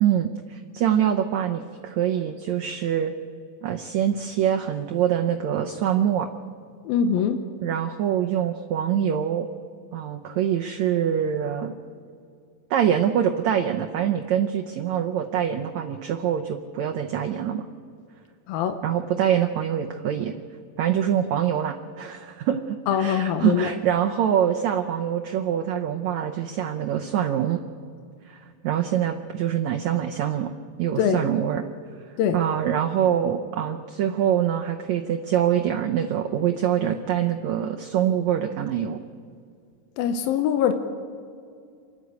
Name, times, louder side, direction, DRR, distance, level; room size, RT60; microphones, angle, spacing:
voice 1, 0.0-3.1 3.6-6.3 7.6-9.5 9.9-11.7 12.7-17.6 18.8-20.3 20.8-27.6 28.3-30.5 30.8-31.6 32.3-39.0, right 9 dB, 85° right, 4 dB, 1.6 m, -24 dB
voice 2, 6.8-7.4 18.5-18.8 22.9-23.7 31.0-31.2 32.2-32.4 40.0-40.7, left 8 dB, 75° left, 7 dB, 2.6 m, -23 dB
28.5 x 11.5 x 8.3 m, 2.3 s
omnidirectional pair, 4.4 m